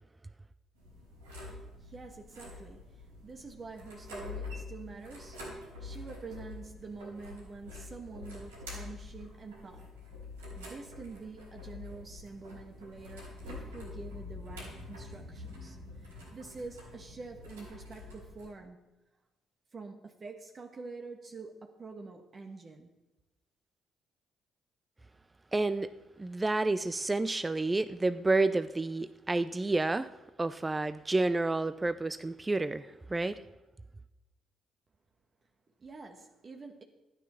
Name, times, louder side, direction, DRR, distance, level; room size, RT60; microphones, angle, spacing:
sound 1, 0.7-18.4, left 2 dB, 90° right, 4.6 m, -46 dB
voice 1, 1.4-10.0 10.5-18.9 19.7-22.9 35.8-36.8, right 4 dB, 40° right, 1.4 m, -47 dB
voice 2, 25.5-25.9 26.2-30.1 30.4-33.4, right 2 dB, 20° right, 0.5 m, -30 dB
12.5 x 9.4 x 5.6 m
hypercardioid pair, 50°, 0 cm